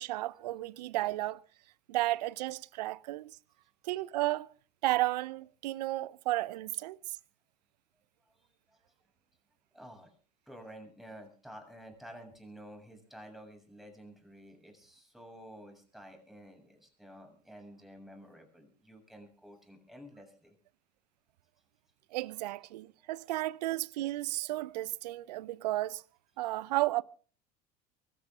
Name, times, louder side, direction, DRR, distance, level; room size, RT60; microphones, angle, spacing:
voice 1, 0.0-1.4 1.9-3.4 3.8-4.5 4.8-7.2 22.1-26.0 26.4-27.0, right 17 dB, 75° right, 0.7 m, -33 dB
voice 2, 8.3-8.8 9.7-10.2 10.5-20.5 23.0-23.1, equal, ahead, 7.2 m, -51 dB
24.5 x 13.5 x 3.7 m
hypercardioid pair, 80°, 21 cm